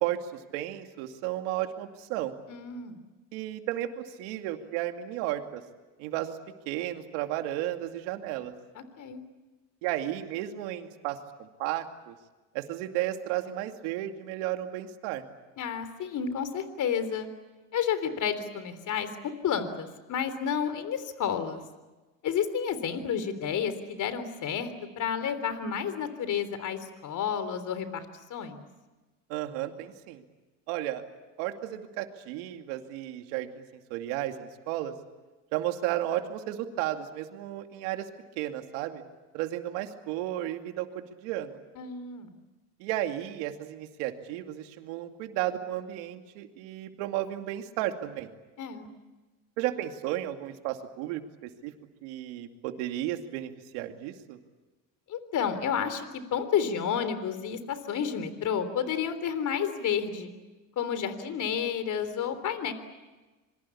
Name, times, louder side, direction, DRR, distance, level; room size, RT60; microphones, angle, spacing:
voice 1, 0.0-2.3 3.3-5.6 6.0-6.4 6.7-8.5 9.8-12.2 12.5-15.2 29.3-30.2 30.7-31.0 31.4-33.6 33.9-34.9 35.5-38.1 38.4-39.0 39.3-41.6 42.8-48.3 49.6-51.7 52.0-54.4, right 13 dB, 85° right, 6 dB, 2.5 m, -33 dB
voice 2, 2.5-3.0 8.8-9.2 15.6-17.3 17.7-21.6 22.2-24.7 25.0-28.1 28.3-28.6 41.8-42.3 48.6-48.9 55.1-60.3 60.8-62.7, left 7 dB, 55° left, 11 dB, 3.5 m, -31 dB
26.5 x 23.5 x 8.5 m, 1.2 s
supercardioid pair, 85°, 35 cm